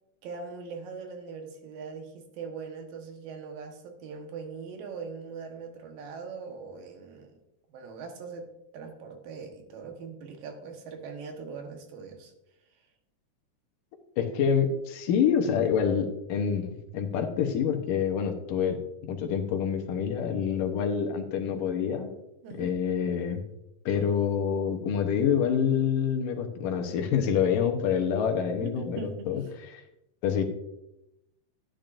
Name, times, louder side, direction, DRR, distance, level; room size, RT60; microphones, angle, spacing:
voice 1, 0.2-7.4 7.7-12.3 12.8-12.9 22.4-22.8 28.6-29.5, right 5 dB, 85° right, 3 dB, 3.0 m, -41 dB
voice 2, 14.2-18.8 19.1-22.1 22.6-23.4 23.9-29.0 29.3-29.4 30.2-30.4, left 7 dB, 80° left, 4 dB, 2.7 m, -27 dB
12.5 x 10.5 x 2.6 m, 0.87 s
omnidirectional pair, 3.9 m